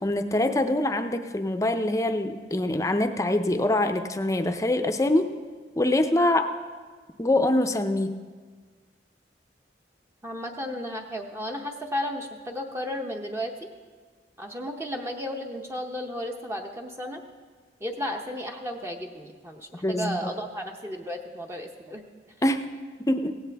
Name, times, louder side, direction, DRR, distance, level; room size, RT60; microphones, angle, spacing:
voice 1, 0.0-5.3 5.8-6.5 7.2-8.2 19.8-20.3 22.4-22.7 23.0-23.3, left 1 dB, 20° left, 8 dB, 0.6 m, -24 dB
voice 2, 10.2-13.7 14.4-17.2 17.8-22.0, equal, 15° right, 2 dB, 0.8 m, -34 dB
17.0 x 16.0 x 3.4 m, 1.5 s
head